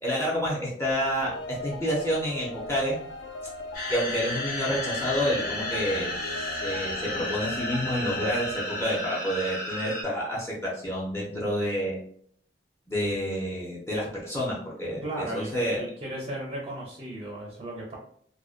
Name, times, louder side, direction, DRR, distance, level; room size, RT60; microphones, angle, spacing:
voice 1, 0.0-3.0 3.9-12.0 12.9-15.0 15.3-15.8, equal, 15° left, -5 dB, 0.5 m, -29 dB
sound 1, 0.8-9.0, left 2 dB, 85° left, 0.3 m, -39 dB
sound 2, 3.7-10.0, left 2 dB, 55° left, 0.8 m, -33 dB
Bowed string instrument, 4.8-8.6, right 1 dB, 30° left, 1.1 m, -47 dB
voice 2, 15.0-18.0, right 1 dB, 35° right, -3 dB, 0.4 m, -36 dB
2.4 x 2.1 x 2.4 m, 0.63 s
head